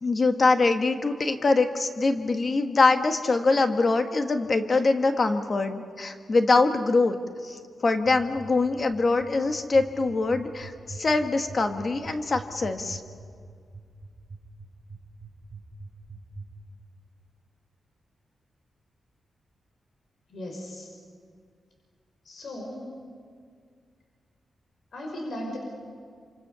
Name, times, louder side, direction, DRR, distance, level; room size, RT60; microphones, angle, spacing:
voice 1, 0.0-7.2 7.4-13.0, left 3 dB, 35° left, 7 dB, 1.5 m, -23 dB
sound 1, 8.0-16.5, right 3 dB, 25° right, 6.1 m, -42 dB
voice 2, 20.3-20.9 22.2-23.0 24.9-25.6, left 1 dB, 60° left, 0 dB, 6.0 m, -37 dB
27.5 x 26.5 x 6.9 m, 2.1 s
wide cardioid pair, 145°, 0 cm